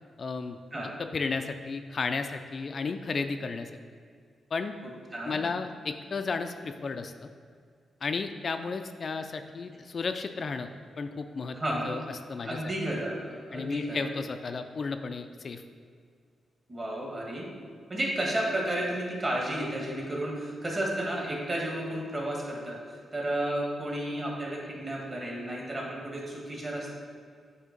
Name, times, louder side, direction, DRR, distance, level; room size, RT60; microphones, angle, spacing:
voice 1, 0.2-0.6 1.1-3.7 4.5-4.7 5.3-7.3 8.0-10.7 11.0-11.6 11.9-12.0 12.3-12.6 13.5-15.6, left 4 dB, 50° left, 7 dB, 0.3 m, -33 dB
voice 2, 5.1-5.4 11.5-11.9 12.4-14.1 16.7-17.5 17.9-26.9, right 1 dB, 30° right, -2 dB, 1.6 m, -32 dB
8.1 x 2.8 x 5.2 m, 2.1 s
cardioid pair, 90°, 0 cm